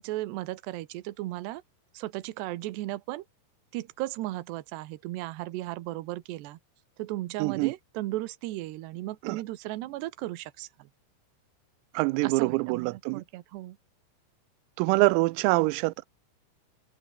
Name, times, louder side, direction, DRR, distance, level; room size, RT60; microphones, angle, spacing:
voice 1, 0.0-1.6 1.9-3.2 3.7-6.6 7.0-10.9 12.2-13.8, right 17 dB, 70° right, 2.8 m, -36 dB
voice 2, 7.4-7.7 9.2-9.4 11.9-13.2 14.8-16.0, right 24 dB, 90° right, 3.4 m, -25 dB
omnidirectional pair, 6.0 m